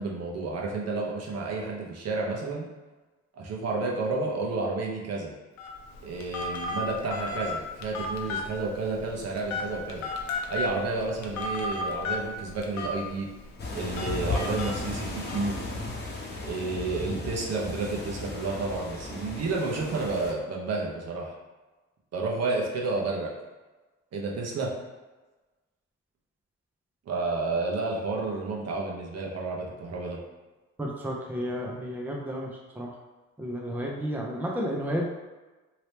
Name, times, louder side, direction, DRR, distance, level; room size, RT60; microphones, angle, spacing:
voice 1, 0.0-2.7 3.4-5.3 6.0-10.1 10.5-13.3 13.7-15.5 16.4-21.3 22.1-23.3 24.1-24.7 27.1-30.2, right 3 dB, 55° right, -2 dB, 0.9 m, -31 dB
Telephone, 5.6-15.4, left 2 dB, 65° left, 0.6 m, -35 dB
Beach waves close up, 13.6-20.3, left 2 dB, 35° left, 1.0 m, -35 dB
voice 2, 30.8-32.5 32.8-32.9 33.4-35.1, equal, 5° right, -1 dB, 0.5 m, -31 dB
2.9 x 2.9 x 3.3 m, 1.2 s
cardioid pair, 90°, 30 cm